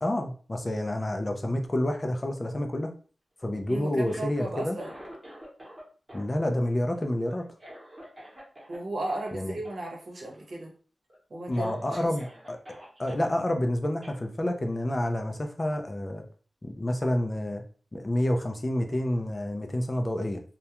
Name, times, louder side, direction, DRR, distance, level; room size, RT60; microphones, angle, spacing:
voice 1, 0.0-2.9 3.4-4.8 6.1-7.5 9.3-9.6 11.5-12.6 13.0-16.2 16.6-17.6 17.9-20.4, left 1 dB, 25° left, 4 dB, 0.4 m, -29 dB
voice 2, 3.7-4.9 8.7-10.7 11.3-11.7 12.0-12.1, right 2 dB, 65° right, -1 dB, 0.8 m, -35 dB
Cough, 3.9-5.8 6.1-8.8 9.1-9.3 9.6-9.8 10.1-10.6 11.1-11.2 11.5-13.3 14.0-14.2, equal, 25° right, 0.9 m, -48 dB
2.3 x 2.1 x 2.8 m, 0.40 s
wide cardioid pair, 130°, 0 cm